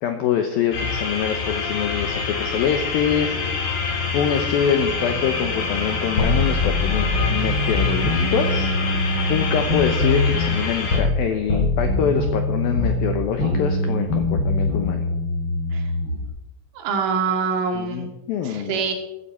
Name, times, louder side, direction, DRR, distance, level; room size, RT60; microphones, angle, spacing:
voice 1, 0.0-3.6 4.1-8.7 9.3-15.1 17.7-18.8, left 8 dB, 90° left, 6 dB, 2.1 m, -25 dB
sound 1, 0.7-11.0, left 5 dB, 60° left, 5.2 m, -26 dB
sound 2, 6.2-11.2 11.5-16.3, left 2 dB, 25° left, 4.7 m, -23 dB
voice 2, 16.8-18.1 18.4-18.9, right 5 dB, 80° right, 3 dB, 4.5 m, -24 dB
15.5 x 13.0 x 4.4 m, 0.96 s
omnidirectional pair, 5.6 m